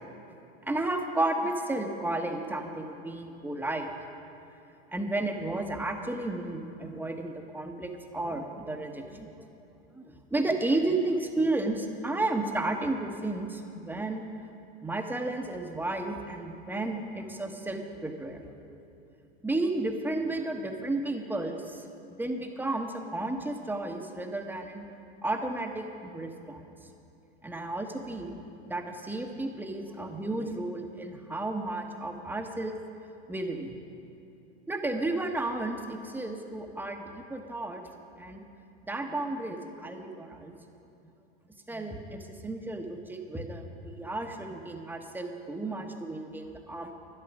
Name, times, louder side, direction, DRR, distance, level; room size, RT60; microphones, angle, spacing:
voice 1, 0.6-3.9 4.9-10.0 10.3-14.2 14.8-18.5 19.4-21.8 22.2-24.8 25.2-26.6 27.4-28.4 28.6-32.8 33.3-33.8 34.7-37.8 38.2-38.4 38.9-40.5 41.7-46.9, right 2 dB, 5° right, 3 dB, 1.0 m, -33 dB
12.0 x 10.5 x 6.0 m, 2.8 s
hypercardioid pair, 110°, 32 cm